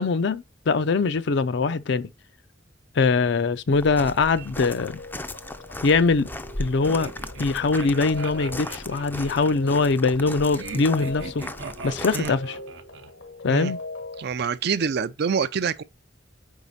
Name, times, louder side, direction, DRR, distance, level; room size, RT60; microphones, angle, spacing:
voice 1, 0.0-2.1 3.0-5.0 5.8-6.3 6.6-7.1 7.4-11.4 11.8-12.6 13.4-13.8, left 4 dB, 65° left, 0.5 m, -22 dB
Walk footsteps, 3.7-12.3, left 1 dB, 10° left, 0.4 m, -37 dB
sound 1, 4.6-14.2, left 2 dB, 85° left, 1.4 m, -40 dB
sound 2, 6.9-9.6 10.5-13.1, right 4 dB, 80° right, 0.8 m, -39 dB
voice 2, 14.2-15.8, right 6 dB, 60° right, 0.4 m, -26 dB
4.9 x 4.7 x 4.1 m
head